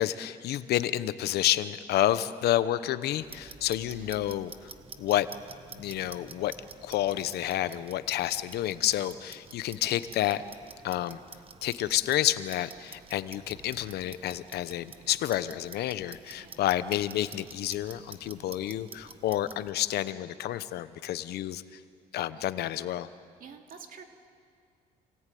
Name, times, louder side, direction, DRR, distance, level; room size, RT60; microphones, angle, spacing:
voice 1, 0.0-4.5 5.0-5.3 5.7-6.5 6.8-10.4 10.8-11.2 11.6-21.6 22.1-23.1, left 13 dB, 70° left, 13 dB, 1.0 m, -29 dB
Clock, 3.2-19.7, right 5 dB, 35° right, 1.3 m, -49 dB
voice 2, 23.4-24.0, right 6 dB, 55° right, 3 dB, 2.8 m, -48 dB
27.5 x 18.5 x 9.4 m, 2.3 s
cardioid pair, 110°, 17 cm